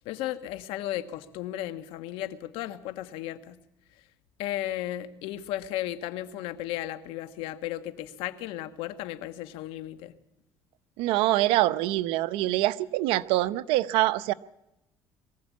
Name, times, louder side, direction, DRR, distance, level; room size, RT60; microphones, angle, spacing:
voice 1, 0.0-3.6 4.4-10.1, left 13 dB, 85° left, 1.4 m, -35 dB
voice 2, 11.0-14.3, right 16 dB, 85° right, 0.8 m, -25 dB
23.0 x 15.0 x 8.4 m
cardioid pair, 105°, 9 cm